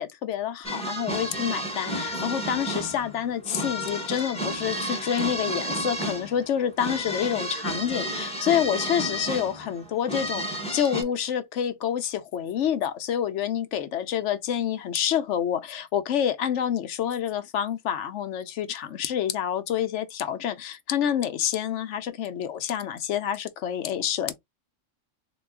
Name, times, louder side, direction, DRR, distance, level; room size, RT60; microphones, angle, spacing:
voice 1, 0.0-24.4, left 9 dB, 70° left, 0.9 m, -28 dB
sound 1, 0.6-11.0, equal, 5° left, 1.0 m, -32 dB
3.9 x 2.2 x 3.6 m
omnidirectional pair, 1.3 m